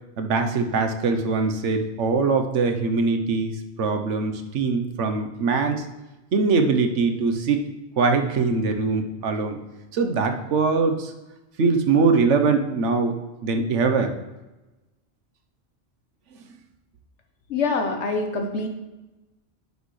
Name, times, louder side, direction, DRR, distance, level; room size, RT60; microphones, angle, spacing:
voice 1, 0.2-5.8 6.3-7.6 8.0-9.6 9.9-11.1 11.6-14.1, right 4 dB, 90° right, 6 dB, 1.2 m, -22 dB
voice 2, 17.5-18.7, left 3 dB, 75° left, 3 dB, 1.4 m, -25 dB
10.5 x 6.3 x 3.2 m, 1.1 s
omnidirectional pair, 1.2 m